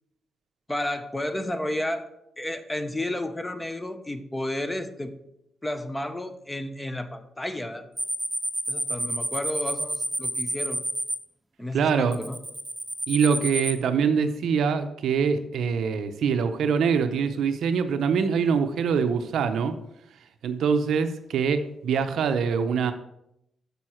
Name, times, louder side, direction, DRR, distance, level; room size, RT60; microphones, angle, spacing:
voice 1, 0.7-2.1 2.4-5.1 5.6-7.8 8.7-10.8 11.6-12.4, left 1 dB, 15° left, 9 dB, 0.8 m, -32 dB
sound 1, 8.0-11.2 12.1-13.8, right 1 dB, 5° right, 1.2 m, -29 dB
voice 2, 11.7-12.2 13.1-19.8 20.4-22.9, right 6 dB, 80° right, 9 dB, 0.6 m, -24 dB
6.8 x 6.3 x 4.4 m, 0.81 s
cardioid pair, 70°, 0 cm